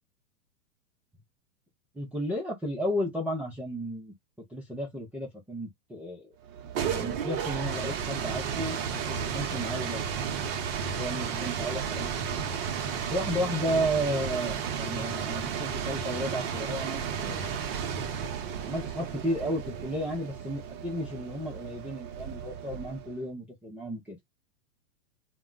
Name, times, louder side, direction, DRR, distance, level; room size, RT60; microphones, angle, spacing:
voice 1, 1.9-4.1 4.5-6.3 6.8-10.0 10.9-12.5 13.1-17.7 18.6-24.2, equal, 5° right, 0.3 m, -33 dB
sound 1, 6.5-23.2, right 7 dB, 45° right, 0.7 m, -33 dB
2.2 x 2.0 x 3.7 m
hypercardioid pair, 125°, 42 cm